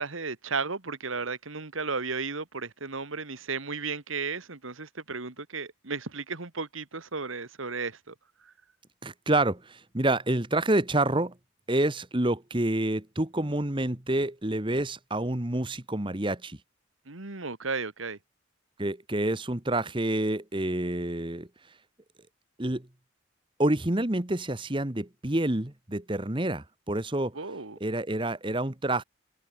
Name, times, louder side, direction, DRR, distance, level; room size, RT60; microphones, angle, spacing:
voice 1, 0.0-8.1 8.4-8.5 17.1-18.2 27.3-27.8, right 4 dB, 80° right, 1.9 m, -34 dB
voice 2, 9.0-11.3 11.7-16.6 18.8-21.5 22.6-22.9 23.6-27.4 27.8-29.0, right 1 dB, 25° right, 1.3 m, -28 dB
head